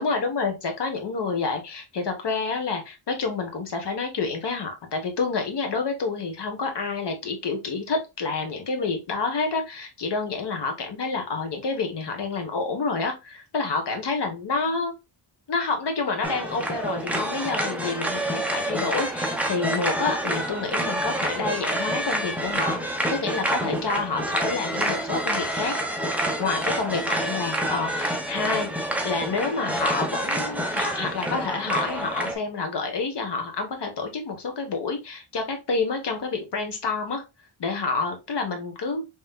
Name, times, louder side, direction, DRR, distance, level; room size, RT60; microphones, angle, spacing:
voice 1, 0.0-14.9 15.5-25.8 26.4-37.2 37.6-39.1, left 4 dB, 55° left, 4 dB, 1.3 m, -28 dB
sound 1, 16.2-32.3, right 1 dB, 5° right, 0.8 m, -28 dB
5.7 x 3.1 x 2.3 m, 0.25 s
wide cardioid pair, 150°, 49 cm